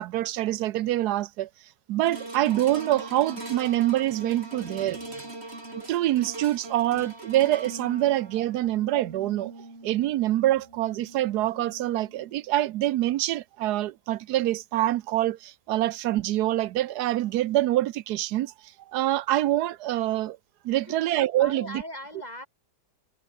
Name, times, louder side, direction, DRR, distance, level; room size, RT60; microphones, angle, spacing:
voice 1, 0.0-1.5 1.9-5.0 5.9-9.5 9.8-18.5 18.9-20.4 20.6-21.8, right 14 dB, 80° right, 1.2 m, -25 dB
sound 1, 2.1-12.5 13.0-13.1, right 2 dB, 40° right, 5.4 m, -42 dB
voice 2, 20.7-21.0 21.4-22.5, left 1 dB, 25° left, 4.6 m, -40 dB
omnidirectional pair, 1.7 m